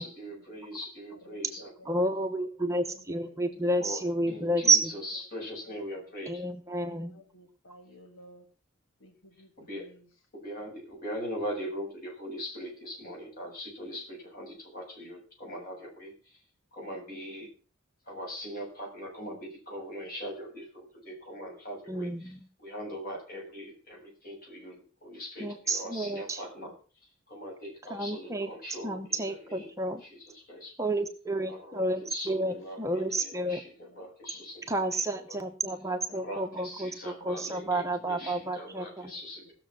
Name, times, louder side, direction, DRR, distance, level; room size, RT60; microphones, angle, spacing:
voice 1, 0.0-1.7 3.8-6.4 9.6-9.9 10.3-16.4 16.7-17.5 18.1-26.7 27.0-30.7 31.4-35.4 36.1-39.5, equal, 45° left, -1 dB, 7.6 m, -41 dB
voice 2, 1.1-4.1 6.0-6.1 6.8-8.5 9.0-10.1 31.7-32.1 32.5-33.2 33.5-34.0 34.3-35.1 35.9-37.7 38.0-39.2, equal, 70° left, 4 dB, 1.8 m, -56 dB
voice 3, 1.9-4.9 6.3-7.1 21.9-22.4 25.4-26.4 27.9-28.5 28.8-30.0 30.8-33.6 34.7-39.1, right 2 dB, 15° right, 5 dB, 0.9 m, -30 dB
17.5 x 7.0 x 6.1 m, 0.37 s
head